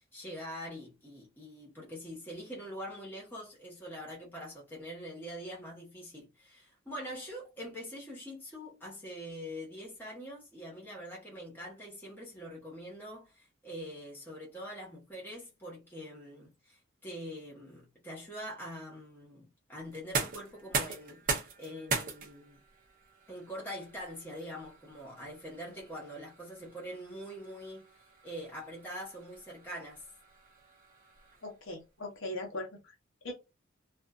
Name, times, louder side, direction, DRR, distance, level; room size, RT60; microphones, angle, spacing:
voice 1, 0.0-22.6 23.3-27.9 28.2-30.0, equal, 10° left, 1.0 m, -44 dB
sound 1, 19.9-31.7, right 4 dB, 40° right, 0.6 m, -40 dB
voice 2, 31.4-32.9 33.2-33.3, left 1 dB, 70° left, 0.9 m, -40 dB
2.5 x 2.4 x 2.3 m
head